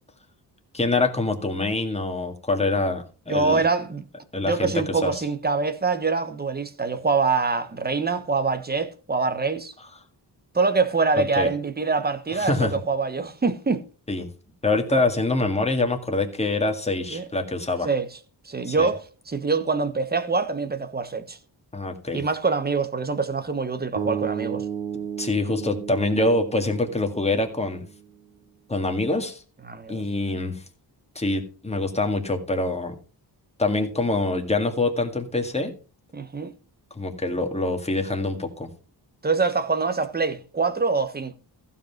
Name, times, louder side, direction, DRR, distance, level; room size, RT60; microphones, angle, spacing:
voice 1, 0.7-3.6 4.3-4.7 5.0-5.1 11.2-11.5 12.3-12.7 14.1-14.3 14.6-17.9 18.6-18.9 21.7-22.2 25.2-27.9 28.7-29.4 29.9-30.6 31.2-33.0 33.6-35.7 37.0-38.7, left 2 dB, 15° left, 1.9 m, -25 dB
voice 2, 3.3-4.0 4.4-9.7 10.5-13.8 17.1-17.2 17.8-18.1 18.4-21.4 22.1-24.7 29.7-30.0 36.1-36.5 39.2-41.3, right 4 dB, 25° right, 1.2 m, -25 dB
sound 1, 23.9-28.1, right 8 dB, 65° right, 3.0 m, -33 dB
15.0 x 5.6 x 5.9 m
wide cardioid pair, 135°, 41 cm